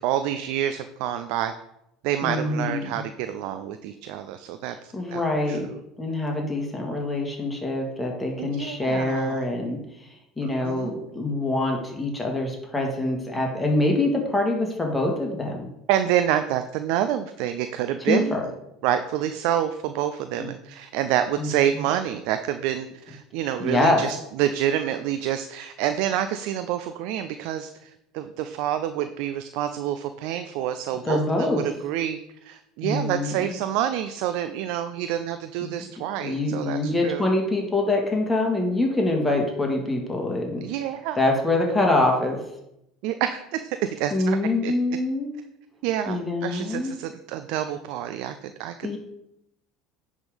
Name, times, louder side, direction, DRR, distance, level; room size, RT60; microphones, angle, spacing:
voice 1, 0.0-1.5 2.0-5.2 5.5-5.8 8.4-9.4 10.4-10.9 15.9-18.5 18.8-37.3 40.6-41.2 43.0-44.4 44.6-44.7 45.8-49.0, right 11 dB, 70° right, 9 dB, 0.4 m, -28 dB
voice 2, 2.2-2.9 4.9-5.6 6.0-9.8 10.4-15.7 18.1-18.5 20.4-20.5 21.4-21.5 23.6-24.0 31.0-31.6 32.8-33.6 35.6-35.7 36.2-40.6 41.2-42.4 44.1-45.3 46.1-47.0 48.8-49.0, left 2 dB, 15° left, 1 dB, 1.9 m, -25 dB
9.8 x 3.7 x 5.1 m, 0.83 s
hypercardioid pair, 85°, 0 cm